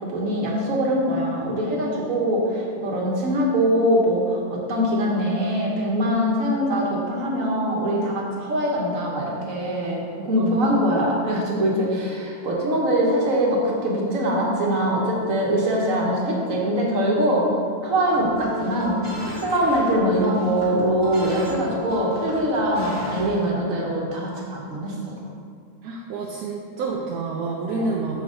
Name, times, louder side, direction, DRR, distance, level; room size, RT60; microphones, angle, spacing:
voice 1, 0.0-17.5 17.8-19.0 19.3-25.0 27.6-28.0, equal, 60° right, -3 dB, 1.5 m, -23 dB
voice 2, 10.2-11.0 25.8-28.2, right 3 dB, 75° right, -1 dB, 1.1 m, -29 dB
sound 1, 18.0-23.5, right 1 dB, 10° right, 1.7 m, -34 dB
6.8 x 4.2 x 4.9 m, 2.2 s
omnidirectional pair, 1.6 m